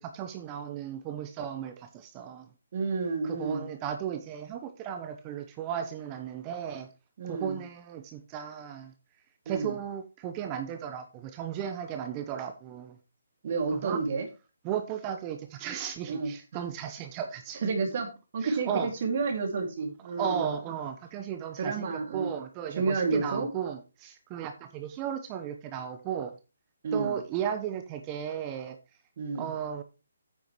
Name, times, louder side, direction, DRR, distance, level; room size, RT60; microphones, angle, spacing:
voice 1, 0.0-2.5 3.2-6.9 7.2-8.9 9.5-13.0 13.7-14.0 14.6-17.6 18.4-18.9 20.2-26.3 26.9-28.8 29.4-29.8, right 9 dB, 25° right, 0.9 m, -35 dB
voice 2, 2.7-3.7 7.2-7.6 9.5-9.8 13.4-14.3 16.1-16.3 17.6-20.5 21.6-22.3 22.7-23.5 26.8-27.2 29.2-29.5, right 4 dB, 50° right, 2.4 m, -30 dB
9.1 x 9.0 x 3.1 m
figure-of-eight pair, 150°, 0 cm